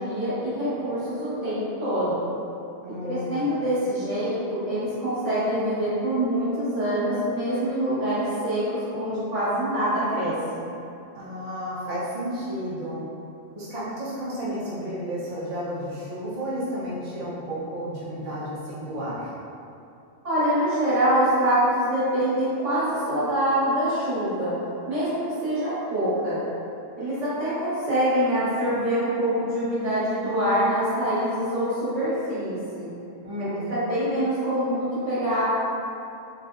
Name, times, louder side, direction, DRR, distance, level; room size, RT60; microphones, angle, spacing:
voice 1, 0.0-2.2 3.0-10.6 20.2-24.5 24.9-26.4 27.0-32.9 33.4-35.4, right 1 dB, 85° right, -12 dB, 2.0 m, -25 dB
voice 2, 2.8-3.5 11.1-13.1 13.5-19.3 33.2-33.8, equal, 35° right, -10 dB, 1.0 m, -32 dB
4.5 x 3.0 x 2.6 m, 2.8 s
omnidirectional pair, 1.2 m